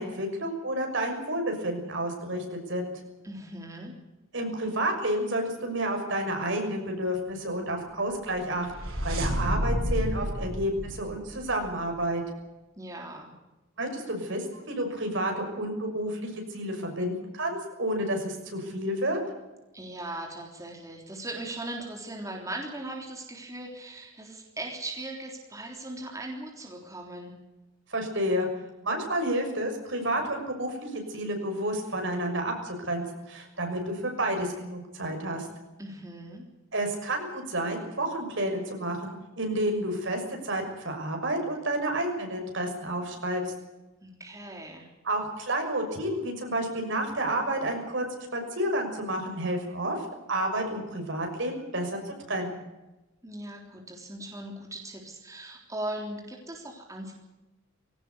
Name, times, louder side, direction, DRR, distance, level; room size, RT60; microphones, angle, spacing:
voice 1, 0.0-2.9 4.3-12.2 13.8-19.2 27.9-28.5 28.8-35.5 36.7-43.5 45.0-48.1 48.3-52.6, right 1 dB, 65° right, 3 dB, 6.3 m, -30 dB
voice 2, 3.2-3.9 12.8-13.3 19.7-27.3 35.8-36.5 44.0-44.9 53.2-57.1, right 1 dB, 15° right, 0 dB, 3.5 m, -39 dB
sound 1, 8.2-11.9, equal, 85° right, 6.4 m, -31 dB
20.5 x 18.0 x 8.4 m, 1.0 s
head